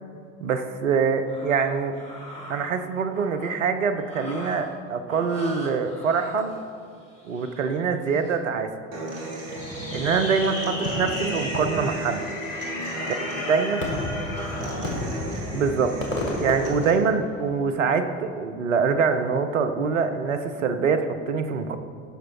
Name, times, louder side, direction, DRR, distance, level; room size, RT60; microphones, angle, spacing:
voice 1, 0.4-1.9 2.5-6.5 7.3-8.7 9.9-12.2 13.3-13.8 15.5-15.9 16.4-21.8, right 5 dB, 80° right, 8 dB, 0.9 m, -24 dB
sound 1, 1.0-3.5 4.0-4.8 5.1-8.4 9.8-10.4 10.7-10.9 11.5-14.6, left 1 dB, 15° left, 3.3 m, -44 dB
Human voice / Acoustic guitar, 8.9-16.9, right 2 dB, 65° right, 3.0 m, -35 dB
Fireworks, 9.5-17.6, left 1 dB, 85° left, 2.0 m, -32 dB
voice 2, 13.0-15.2, left 3 dB, 70° left, 6 dB, 1.5 m, -42 dB
17.0 x 6.3 x 4.6 m, 2.2 s
figure-of-eight pair, 65°, 38 cm